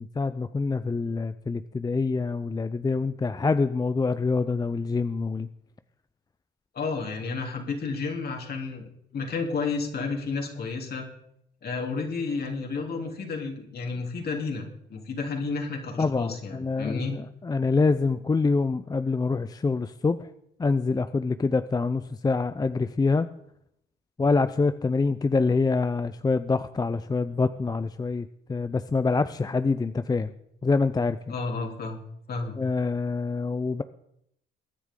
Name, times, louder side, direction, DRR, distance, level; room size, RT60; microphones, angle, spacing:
voice 1, 0.0-5.5 16.0-20.3 20.6-23.3 24.2-30.3 30.6-31.2 32.6-33.8, left 4 dB, 20° left, 11 dB, 0.5 m, -26 dB
voice 2, 6.7-8.9 9.1-11.1 11.6-14.6 14.9-17.1 31.3-32.0 32.3-32.6, left 4 dB, 55° left, 1 dB, 3.2 m, -31 dB
22.5 x 9.9 x 3.8 m, 0.75 s
cardioid pair, 90°, 20 cm